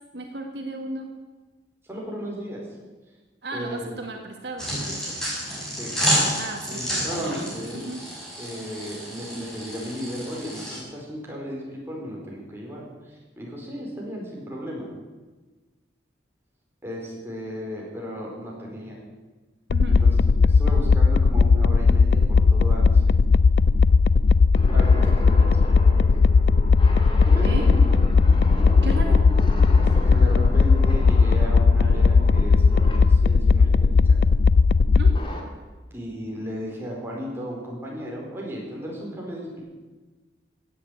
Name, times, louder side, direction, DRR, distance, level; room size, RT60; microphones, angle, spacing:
voice 1, 0.1-1.1 3.4-5.2 6.4-8.0 19.7-20.0 27.4-27.7 28.8-29.2 34.9-35.1, right 1 dB, 70° right, 3 dB, 1.8 m, -35 dB
voice 2, 1.9-2.6 3.5-4.0 5.8-5.9 6.7-7.9 8.4-12.8 13.4-14.9 16.8-19.0 19.9-23.2 24.7-26.0 27.3-27.9 29.8-33.9 35.9-39.6, equal, 15° right, -3 dB, 4.7 m, -35 dB
sound 1, 4.6-10.8, equal, 5° left, 5.9 m, -29 dB
sound 2, 19.7-35.2, left 4 dB, 65° left, 0.4 m, -17 dB
sound 3, 24.6-33.2 35.2-35.4, left 1 dB, 30° left, 2.4 m, -35 dB
16.5 x 8.7 x 8.2 m, 1.3 s
head